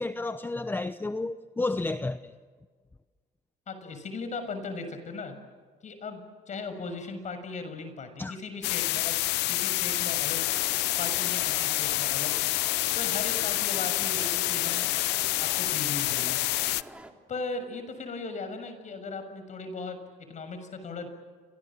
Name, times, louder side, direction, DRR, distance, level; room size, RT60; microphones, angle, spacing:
voice 1, 0.0-2.3 8.2-8.4, left 2 dB, 10° left, 0.8 m, -31 dB
voice 2, 3.7-5.3 5.8-9.2 9.5-10.4 11.0-12.3 12.9-14.8 15.4-16.4 17.3-20.0 20.3-21.1, left 3 dB, 45° left, 6.8 m, -37 dB
sound 1, 8.6-16.8, left 18 dB, 90° left, 0.8 m, -28 dB
sound 2, 10.3-17.1, right 1 dB, 5° right, 3.2 m, -45 dB
29.0 x 26.0 x 7.7 m
cardioid pair, 110°, 17 cm